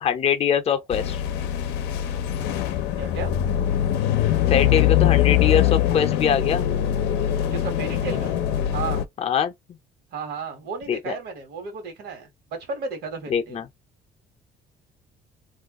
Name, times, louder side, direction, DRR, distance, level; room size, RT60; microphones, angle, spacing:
voice 1, 0.0-1.2 4.5-6.7 9.2-9.8 10.9-11.2 13.3-13.7, left 8 dB, 35° left, 0.5 m, -23 dB
sound 1, 0.9-9.0, left 11 dB, 90° left, 0.5 m, -22 dB
voice 2, 3.0-3.3 7.5-8.3 8.7-9.1 10.1-13.6, right 4 dB, 75° right, 1.2 m, -33 dB
2.4 x 2.3 x 3.5 m
cardioid pair, 110°, 17 cm